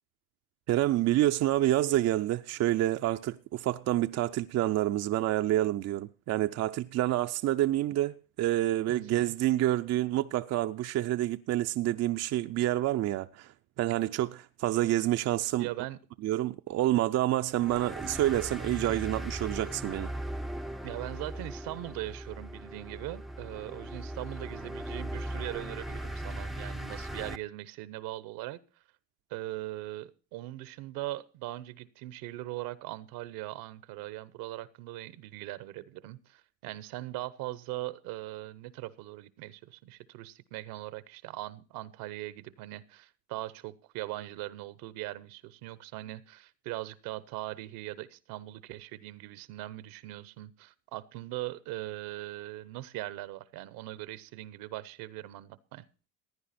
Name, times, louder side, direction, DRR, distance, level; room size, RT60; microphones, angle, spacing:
voice 1, 0.7-13.5 13.8-15.7 16.2-20.1, right 14 dB, 50° right, 0.5 m, -28 dB
voice 2, 8.9-9.3 13.9-14.0 15.6-16.0 20.8-28.6 29.3-55.8, right 16 dB, 75° right, 0.9 m, -40 dB
sound 1, 17.5-27.4, right 1 dB, ahead, 0.5 m, -39 dB
16.0 x 9.8 x 4.2 m
supercardioid pair, 95°, 35 cm